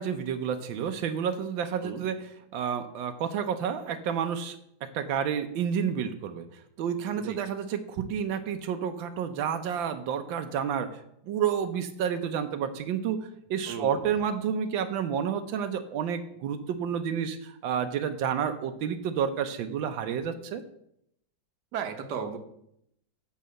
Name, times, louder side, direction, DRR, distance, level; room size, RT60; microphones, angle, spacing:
voice 1, 0.0-20.6, right 8 dB, 90° right, 8 dB, 1.5 m, -30 dB
voice 2, 13.7-14.1 21.7-22.4, right 6 dB, 65° right, 5 dB, 1.6 m, -35 dB
11.5 x 4.1 x 7.6 m, 0.75 s
omnidirectional pair, 2.0 m